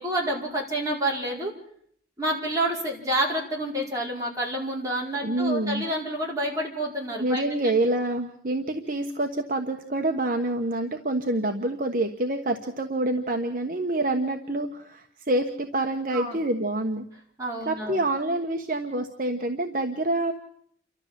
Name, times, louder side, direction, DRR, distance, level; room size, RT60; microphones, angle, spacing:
voice 1, 0.0-1.5 2.2-7.4 16.1-16.4 17.4-18.0, right 1 dB, 20° right, -3 dB, 4.9 m, -28 dB
voice 2, 5.2-5.8 7.2-17.0 17.6-20.3, right 1 dB, 45° right, 3 dB, 1.2 m, -27 dB
29.0 x 13.0 x 7.5 m, 0.65 s
head